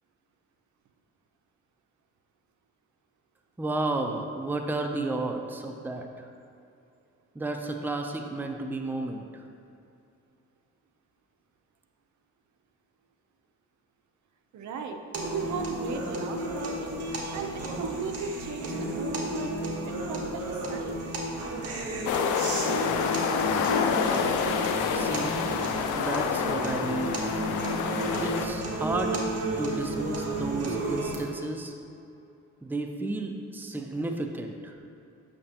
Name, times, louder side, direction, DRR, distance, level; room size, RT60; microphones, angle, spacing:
voice 1, 3.6-6.3 7.3-9.5 24.9-25.6 25.9-27.3 28.2-29.2 29.6-31.7 32.6-34.8, right 2 dB, 5° right, 3 dB, 0.5 m, -32 dB
voice 2, 14.5-15.0 15.3-21.0, right 5 dB, 70° right, 5 dB, 0.7 m, -36 dB
sound 1, 15.1-31.2, right 1 dB, 50° right, 1.3 m, -32 dB
sound 2, 22.1-28.5, left 6 dB, 80° left, 0.6 m, -28 dB
8.7 x 6.3 x 2.9 m, 2.6 s
cardioid pair, 90°, 30 cm